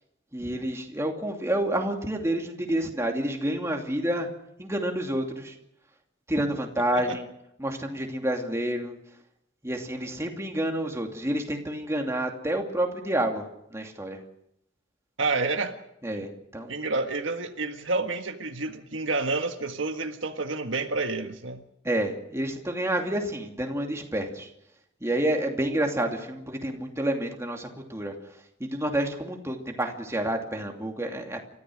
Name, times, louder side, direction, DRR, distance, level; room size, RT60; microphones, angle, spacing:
voice 1, 0.3-4.3 4.6-5.5 6.3-7.2 7.6-9.0 9.6-14.2 16.0-16.7 21.8-24.5 25.0-28.1 28.6-31.4, right 1 dB, 15° right, 2 dB, 2.6 m, -29 dB
voice 2, 15.2-15.8 16.1-16.2 16.7-21.6, right 3 dB, 75° right, 5 dB, 1.7 m, -29 dB
29.0 x 14.5 x 6.4 m, 0.79 s
head